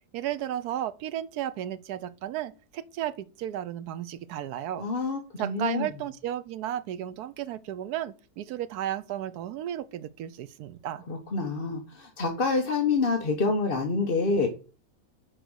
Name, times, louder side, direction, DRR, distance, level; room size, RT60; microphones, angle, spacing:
voice 1, 0.1-4.9 5.4-11.0, right 11 dB, 80° right, 1.2 m, -34 dB
voice 2, 4.8-5.9 11.1-14.5, left 4 dB, 40° left, 1.2 m, -27 dB
6.1 x 5.2 x 6.2 m
omnidirectional pair, 1.6 m